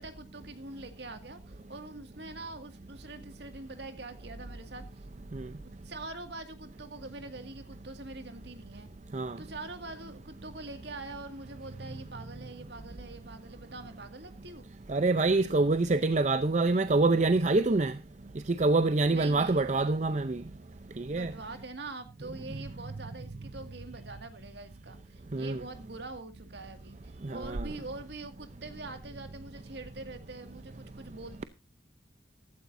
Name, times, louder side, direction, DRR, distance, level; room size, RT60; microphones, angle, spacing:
voice 1, 0.0-5.1 5.8-8.9 9.4-14.7 19.1-19.7 21.1-31.4, right 2 dB, 65° right, 2.1 m, -44 dB
voice 2, 14.9-17.9 18.5-20.4 21.0-21.3 25.3-25.6 27.2-27.7, right 3 dB, 40° right, 0.6 m, -26 dB
15.5 x 13.5 x 2.6 m
head